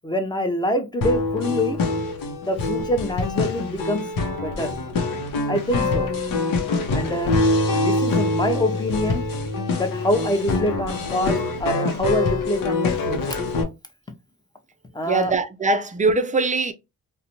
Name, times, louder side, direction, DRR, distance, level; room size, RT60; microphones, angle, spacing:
voice 1, 0.0-1.8 2.4-4.0 4.3-4.8 5.5-6.1 6.9-7.4 7.8-9.2 9.8-13.4 14.9-15.3, left 1 dB, 10° left, 0.7 m, -25 dB
sound 1, 1.0-13.6, left 2 dB, 75° left, 0.7 m, -24 dB
voice 2, 15.1-16.7, right 3 dB, 25° right, 0.4 m, -22 dB
2.5 x 2.2 x 2.9 m
cardioid pair, 80°, 34 cm